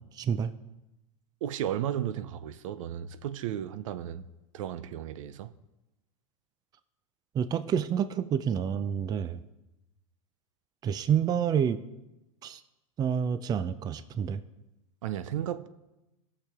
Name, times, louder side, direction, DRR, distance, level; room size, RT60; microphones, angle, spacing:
voice 1, 0.1-0.5 7.3-9.4 10.8-11.8 12.4-12.6 13.0-14.4, right 8 dB, 25° right, 0.4 m, -28 dB
voice 2, 1.4-5.5 15.0-15.7, right 10 dB, 75° right, 0.6 m, -34 dB
16.5 x 6.8 x 3.6 m
hypercardioid pair, 115°, 17 cm